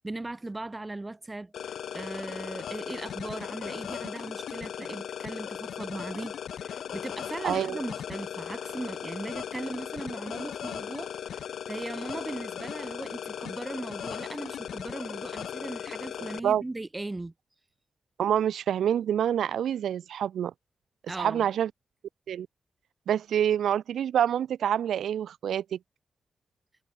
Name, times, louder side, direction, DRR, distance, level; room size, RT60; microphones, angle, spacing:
voice 1, 0.0-1.5 1.9-17.3 21.1-21.5, right 2 dB, 25° right, 1.4 m, -38 dB
sound 1, 1.5-16.4, left 9 dB, 85° left, 0.5 m, -37 dB
voice 2, 7.4-7.8 16.4-16.6 18.2-20.5 21.2-21.7 22.3-22.5 23.1-25.8, right 9 dB, 90° right, 0.9 m, -27 dB
cardioid pair, 55°, 0 cm